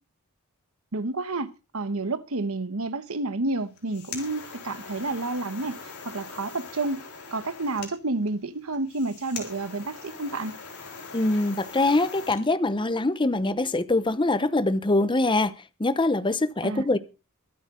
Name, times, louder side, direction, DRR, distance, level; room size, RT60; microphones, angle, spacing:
voice 1, 0.9-5.8 6.0-7.0 7.3-10.6 16.6-16.8, right 2 dB, 70° right, 1.1 m, -30 dB
sound 1, 3.6-12.4, left 5 dB, 85° left, 4.3 m, -42 dB
voice 2, 11.1-15.5 15.8-17.0, left 2 dB, 20° left, 0.8 m, -23 dB
23.0 x 8.6 x 3.8 m
head